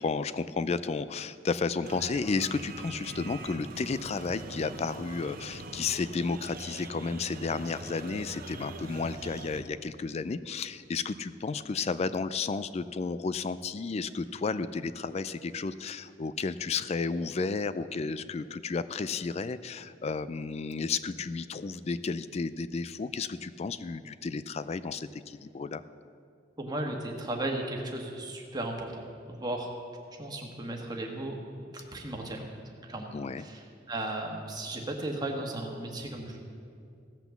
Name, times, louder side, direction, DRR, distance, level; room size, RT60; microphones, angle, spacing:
voice 1, 0.0-25.8 33.1-33.5, left 4 dB, 35° left, 14 dB, 0.4 m, -32 dB
sound 1, 1.8-9.6, right 2 dB, 55° right, 0.8 m, -43 dB
voice 2, 26.6-29.0 29.3-29.7 30.2-31.4 31.7-32.5 32.9-33.1 33.4-36.4, right 1 dB, 20° right, 1 dB, 1.4 m, -35 dB
16.0 x 6.0 x 7.1 m, 2.3 s
head